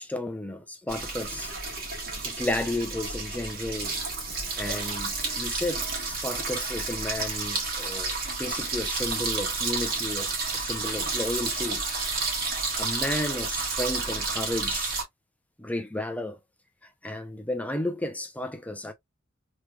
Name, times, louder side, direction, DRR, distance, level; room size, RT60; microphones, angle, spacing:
voice 1, 0.0-1.5 2.2-3.9 4.6-8.1 8.4-11.8 12.8-15.0 15.6-16.4 17.0-18.9, left 1 dB, 10° left, 0.6 m, -33 dB
sound 1, 0.9-15.0, right 3 dB, 50° right, 1.6 m, -31 dB
3.3 x 3.0 x 2.3 m
head